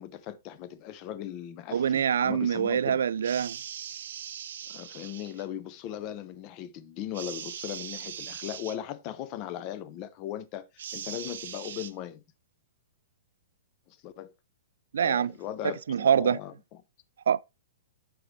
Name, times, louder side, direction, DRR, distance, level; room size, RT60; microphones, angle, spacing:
voice 1, 0.0-3.0 4.7-12.2 13.9-14.3 15.0-16.5, left 11 dB, 25° left, 0.6 m, -38 dB
voice 2, 1.7-3.6 14.9-15.3 15.6-16.4 17.3-17.4, right 8 dB, 85° right, 0.3 m, -25 dB
sound 1, 3.2-5.4 7.1-8.8 10.8-11.9, right 9 dB, 60° right, 0.8 m, -40 dB
9.2 x 6.0 x 3.2 m
hypercardioid pair, 170°, 0 cm